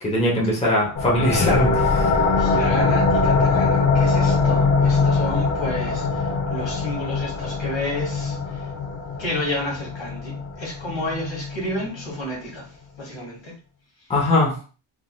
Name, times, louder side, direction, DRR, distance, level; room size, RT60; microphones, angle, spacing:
voice 1, 0.0-1.7 14.1-14.5, left 1 dB, 15° left, -4 dB, 0.8 m, -20 dB
sound 1, 1.0-12.3, left 4 dB, 40° left, 0.5 m, -22 dB
voice 2, 2.4-8.7 9.2-12.7 13.0-13.5, left 1 dB, 75° left, -2 dB, 1.5 m, -30 dB
3.7 x 2.5 x 2.3 m, 0.38 s
wide cardioid pair, 165°, 45 cm